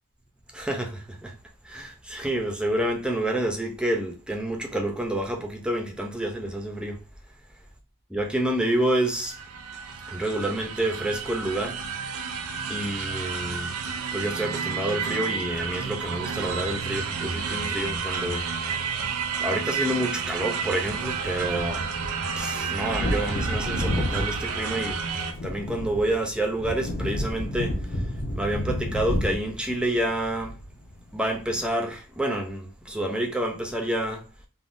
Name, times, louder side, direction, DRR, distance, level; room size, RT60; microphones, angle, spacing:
voice 1, 0.5-1.3 1.6-7.0 8.1-9.3 10.1-11.8 12.7-13.7 14.1-18.5 19.0-19.1 19.4-21.8 22.4-25.0 25.4-28.1 28.3-30.6 31.1-34.2, right 1 dB, 5° right, 0.4 m, -28 dB
sound 1, 8.8-25.3, right 5 dB, 80° right, 0.5 m, -31 dB
Wind / Thunder, 22.7-31.0 31.3-31.4, left 1 dB, 40° left, 0.6 m, -30 dB
3.4 x 2.1 x 2.4 m
head